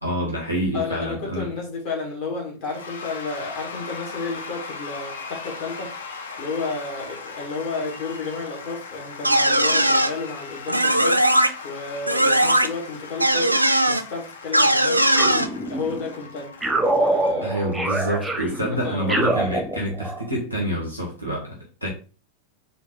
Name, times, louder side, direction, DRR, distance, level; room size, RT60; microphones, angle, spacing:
voice 1, 0.0-1.5 17.4-21.9, equal, 85° left, 1.1 m, -27 dB
voice 2, 0.7-5.9 6.4-11.2 11.6-15.1 15.7-17.5 17.9-19.2, left 4 dB, 45° left, 1.7 m, -32 dB
Cheering / Applause / Crowd, 2.6-18.3, left 4 dB, 65° left, 0.6 m, -38 dB
sound 1, 9.2-10.1 10.7-11.5 12.1-12.7 13.2-14.0 14.5-15.5, right 1 dB, 90° right, 0.3 m, -18 dB
sound 2, 15.1-16.1 16.6-20.3, right 2 dB, 5° right, 0.7 m, -25 dB
4.0 x 2.7 x 3.6 m
figure-of-eight pair, 90°, 0 cm